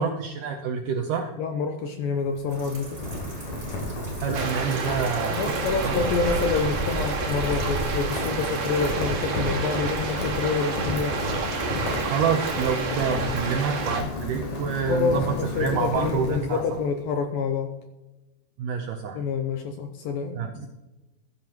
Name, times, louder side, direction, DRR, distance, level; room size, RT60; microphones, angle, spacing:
voice 1, 0.0-1.3 4.2-5.4 5.8-6.0 12.0-15.3 15.6-16.6 18.6-19.2 20.3-20.7, right 6 dB, 80° right, 3 dB, 1.9 m, -27 dB
voice 2, 1.4-3.0 5.3-11.2 13.9-14.0 14.9-17.7 19.2-20.4, left 5 dB, 80° left, 6 dB, 2.1 m, -27 dB
Rain, 2.1-16.9, left 1 dB, 55° left, 4.9 m, -32 dB
sound 1, 2.5-8.9, right 2 dB, 30° right, 4.7 m, -41 dB
sound 2, 4.3-14.0, right 4 dB, 55° right, 3.1 m, -30 dB
15.5 x 11.5 x 3.0 m, 1.0 s
omnidirectional pair, 4.8 m